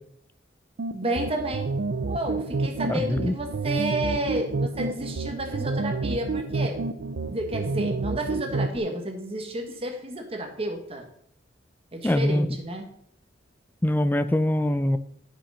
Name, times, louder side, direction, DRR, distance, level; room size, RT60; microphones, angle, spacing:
sound 1, 0.8-8.8, right 3 dB, 65° right, 0.5 m, -29 dB
voice 1, 0.9-1.7 2.1-6.8 7.3-11.1 11.9-12.8, right 1 dB, 30° right, 3 dB, 1.5 m, -31 dB
voice 2, 12.0-12.5 13.8-15.0, left 1 dB, 10° left, 12 dB, 0.4 m, -23 dB
8.4 x 5.9 x 5.6 m, 0.68 s
head